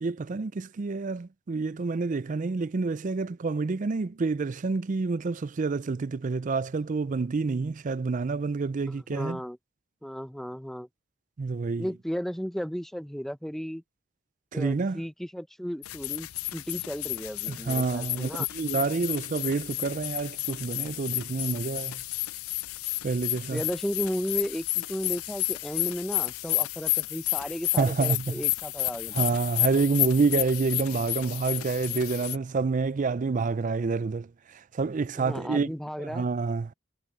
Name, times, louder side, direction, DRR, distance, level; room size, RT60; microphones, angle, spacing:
voice 1, 0.0-9.4 11.4-11.9 14.5-15.0 17.5-22.0 23.0-23.6 27.8-28.3 29.1-35.7 36.0-36.7, right 4 dB, 35° right, 0.4 m, -28 dB
voice 2, 8.9-9.6 10.0-10.9 11.7-13.8 14.5-18.5 23.5-29.2 35.2-36.3, equal, ahead, 0.7 m, -34 dB
sound 1, 15.8-32.4, left 19 dB, 90° left, 0.4 m, -31 dB
head